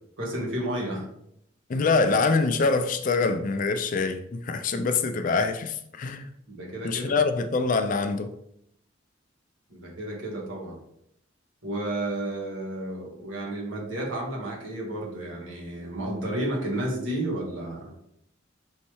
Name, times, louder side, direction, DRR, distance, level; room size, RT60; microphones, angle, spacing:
voice 1, 0.2-1.0 6.5-7.1 9.7-10.8 11.6-17.9, right 1 dB, 80° right, 1.4 m, -32 dB
voice 2, 1.7-6.2 6.8-8.3, left 4 dB, 40° left, 0.3 m, -25 dB
5.4 x 3.2 x 3.0 m
head